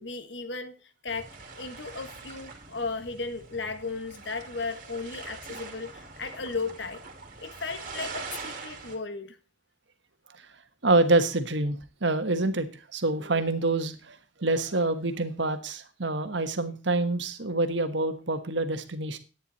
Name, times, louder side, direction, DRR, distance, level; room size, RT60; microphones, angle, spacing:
voice 1, 0.0-0.8 1.0-1.3 1.5-7.0 7.4-9.4, left 4 dB, 60° left, 9 dB, 1.4 m, -35 dB
sound 1, 1.1-9.0, right 4 dB, 45° right, 2.5 m, -43 dB
voice 2, 10.8-19.2, right 2 dB, 65° right, 9 dB, 1.3 m, -26 dB
11.5 x 9.5 x 4.2 m, 0.33 s
head